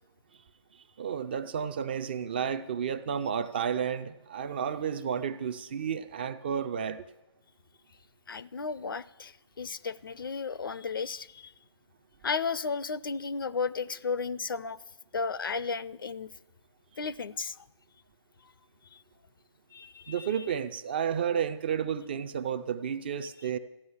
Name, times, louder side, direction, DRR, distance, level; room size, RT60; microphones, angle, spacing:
voice 1, 1.0-7.0 20.1-23.6, right 8 dB, 20° right, 0.4 m, -31 dB
voice 2, 8.3-11.5 12.2-14.8 15.1-16.3 17.0-17.6 19.7-20.5 23.4-23.5, left 5 dB, 50° left, 0.5 m, -34 dB
14.5 x 10.5 x 7.1 m
figure-of-eight pair, 150°, 15 cm